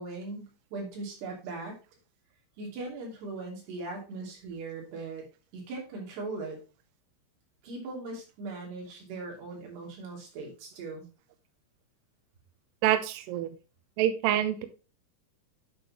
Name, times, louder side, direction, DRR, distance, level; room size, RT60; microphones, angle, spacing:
voice 1, 0.0-1.8 2.6-5.2 5.5-6.6 7.6-11.1, right 3 dB, 55° right, -1 dB, 4.8 m, -39 dB
voice 2, 12.8-13.5 14.0-14.7, right 11 dB, 85° right, 9 dB, 2.4 m, -26 dB
10.0 x 6.7 x 3.0 m, 0.32 s
omnidirectional pair, 5.8 m